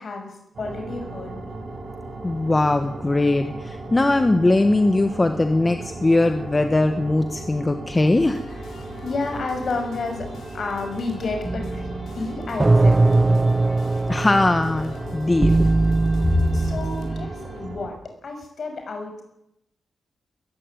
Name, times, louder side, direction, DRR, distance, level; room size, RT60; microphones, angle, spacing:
voice 1, 0.0-1.6 9.0-10.3 10.5-13.6 16.3-18.0 18.2-19.2, left 3 dB, 50° left, 4 dB, 6.4 m, -31 dB
sound 1, 0.5-17.9, right 2 dB, 45° right, 6.2 m, -36 dB
voice 2, 2.2-8.6 14.1-15.7 16.3-16.4, left 2 dB, 20° left, 7 dB, 1.3 m, -20 dB
sound 2, 8.1-17.6, left 4 dB, 85° left, 6.7 m, -44 dB
sound 3, 11.4-17.3, right 2 dB, 20° right, 0.8 m, -21 dB
22.0 x 15.5 x 9.3 m, 0.82 s
wide cardioid pair, 150°, 0 cm